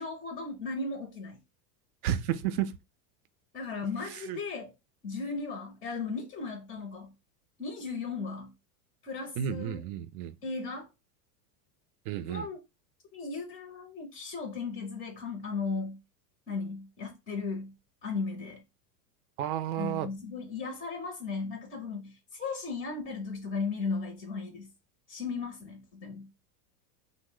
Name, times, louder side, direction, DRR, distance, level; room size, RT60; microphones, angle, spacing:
voice 1, 0.0-1.4 3.5-4.7 5.0-7.1 7.6-8.5 9.0-9.8 10.4-10.8 12.3-12.6 13.1-16.0 16.5-17.7 18.0-18.6 19.8-24.7 25.1-26.3, left 4 dB, 15° left, 0.5 m, -36 dB
voice 2, 2.0-2.7 4.1-4.4 9.4-10.3 12.1-12.5 19.4-20.1, right 10 dB, 65° right, 0.5 m, -32 dB
3.0 x 2.0 x 3.6 m
supercardioid pair, 145°, 48 cm